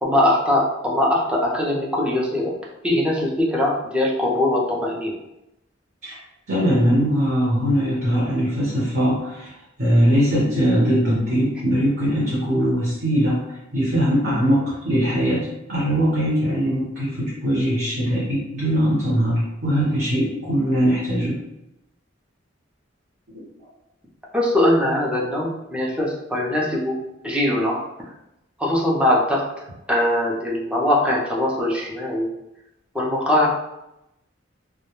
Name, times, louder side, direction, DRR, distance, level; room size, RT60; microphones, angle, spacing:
voice 1, 0.0-2.5 2.8-5.2 24.3-27.8 28.6-29.5 29.9-32.3 32.9-33.5, left 1 dB, 5° right, -3 dB, 0.4 m, -21 dB
voice 2, 6.5-9.5 9.8-21.4 23.3-23.4, equal, 55° right, -8 dB, 0.8 m, -21 dB
2.2 x 2.1 x 2.9 m, 0.89 s
head